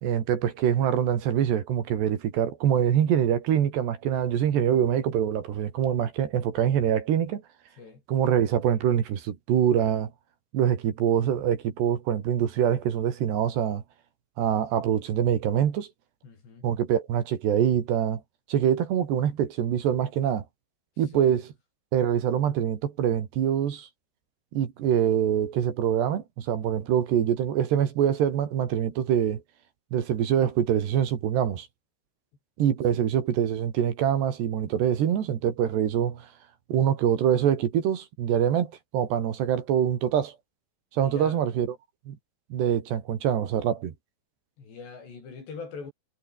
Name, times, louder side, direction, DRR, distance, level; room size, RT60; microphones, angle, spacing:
voice 1, 0.0-7.4 8.1-10.1 10.5-13.8 14.4-15.9 16.6-18.2 18.5-20.4 21.0-21.4 21.9-23.9 24.5-29.4 29.9-31.7 32.6-36.3 36.7-40.3 40.9-41.7 42.1-42.2 42.5-43.9, right 9 dB, 70° right, 4.5 m, -24 dB
voice 2, 16.2-16.7 21.1-21.4 32.9-33.0 41.0-41.4 44.6-45.9, left 5 dB, 70° left, 9.0 m, -42 dB
omnidirectional pair, 5.1 m